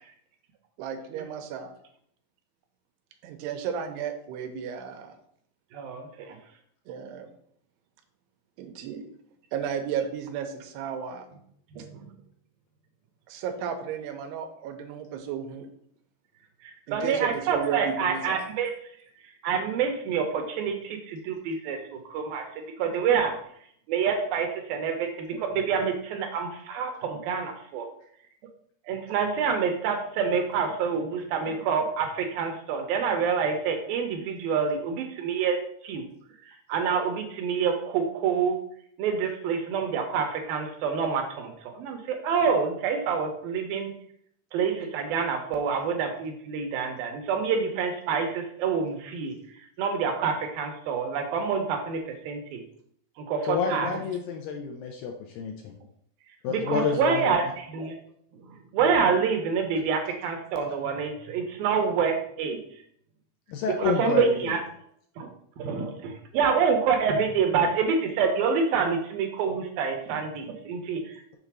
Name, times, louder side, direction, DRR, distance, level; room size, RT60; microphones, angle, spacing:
voice 1, 0.8-1.7 3.2-5.2 6.9-7.3 8.6-9.1 9.5-11.3 13.3-15.7 16.9-18.5 53.6-54.1 56.7-56.8, right 7 dB, 90° right, 7 dB, 2.9 m, -34 dB
voice 2, 5.7-6.4 11.8-12.0 16.6-18.7 19.4-21.8 22.1-23.3 23.9-27.9 28.9-35.6 35.8-36.0 36.5-38.6 39.0-43.9 44.5-49.3 49.8-52.0 52.3-52.6 53.3-53.9 56.5-57.5 57.7-58.0 58.7-62.6 63.8-64.6 65.2-65.3 65.6-71.4, right 6 dB, 75° right, 4 dB, 2.3 m, -27 dB
voice 3, 53.5-55.7 56.4-57.3 63.5-64.5, left 6 dB, 80° left, 2 dB, 2.1 m, -29 dB
6.8 x 3.8 x 6.0 m, 0.67 s
omnidirectional pair, 4.7 m